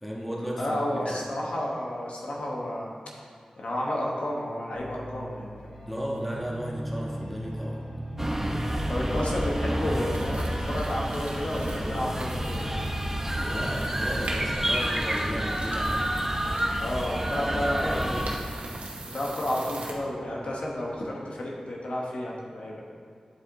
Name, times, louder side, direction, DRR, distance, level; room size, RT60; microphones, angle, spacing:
voice 1, 0.0-1.3 5.9-7.8 13.5-16.2 17.5-18.3, equal, ahead, -4 dB, 1.5 m, -35 dB
voice 2, 0.6-2.9 3.6-5.7 8.9-12.6 16.8-18.4 19.1-22.8, left 1 dB, 75° left, -3 dB, 1.2 m, -31 dB
sound 1, 4.7-21.1, equal, 50° left, 1.7 m, -40 dB
sound 2, 8.2-18.4, right 1 dB, 15° right, 0.8 m, -29 dB
sound 3, 10.1-19.9, right 2 dB, 85° right, 1.0 m, -42 dB
9.8 x 4.7 x 3.8 m, 2.2 s
wide cardioid pair, 55°, 2 cm